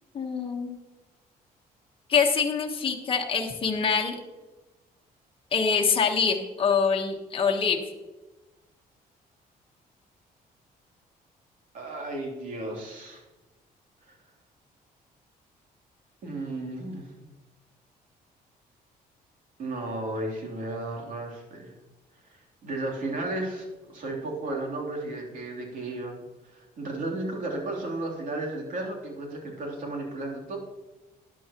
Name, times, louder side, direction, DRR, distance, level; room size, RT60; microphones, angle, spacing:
voice 1, 0.1-0.8 2.1-4.1 5.5-7.8, left 5 dB, 35° left, 1 dB, 1.3 m, -25 dB
voice 2, 11.7-13.2 14.0-14.2 16.2-17.1 19.6-21.8 22.2-30.6, right 2 dB, 60° right, 0 dB, 3.2 m, -34 dB
12.5 x 10.5 x 3.0 m, 1.1 s
cardioid pair, 125°, 16 cm